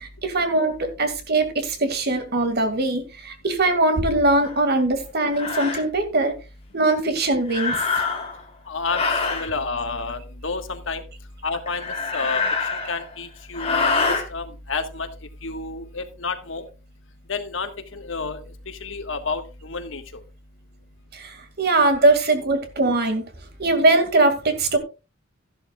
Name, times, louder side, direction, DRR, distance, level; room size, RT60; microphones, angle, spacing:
voice 1, 0.0-6.3 6.7-7.8 21.1-23.2 23.6-24.8, right 2 dB, 55° right, 8 dB, 2.2 m, -21 dB
sound 1, 4.4-4.6 5.3-5.8 7.5-8.4 8.9-9.5 11.7-13.1 13.5-14.2, left 4 dB, 30° left, 2.9 m, -25 dB
voice 2, 8.7-11.0 11.4-15.1 15.4-16.6 17.3-18.4 18.7-20.0, left 4 dB, 70° left, 7 dB, 1.5 m, -30 dB
13.0 x 11.5 x 2.4 m, 0.30 s
head